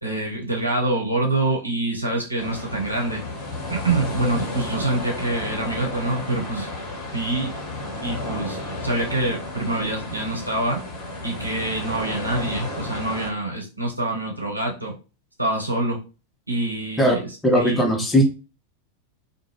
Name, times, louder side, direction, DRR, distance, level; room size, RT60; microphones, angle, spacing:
voice 1, 0.0-3.2 3.7-6.7 7.0-7.5 8.0-10.8 11.2-14.9 15.4-16.0 16.5-17.3 17.5-18.0, right 2 dB, 85° right, -1 dB, 0.8 m, -26 dB
sound 1, 2.4-13.3, left 2 dB, 30° left, 1.1 m, -32 dB
voice 2, 17.4-18.3, equal, 10° left, 3 dB, 0.7 m, -18 dB
2.5 x 2.3 x 3.1 m, 0.33 s
figure-of-eight pair, 90°, 0 cm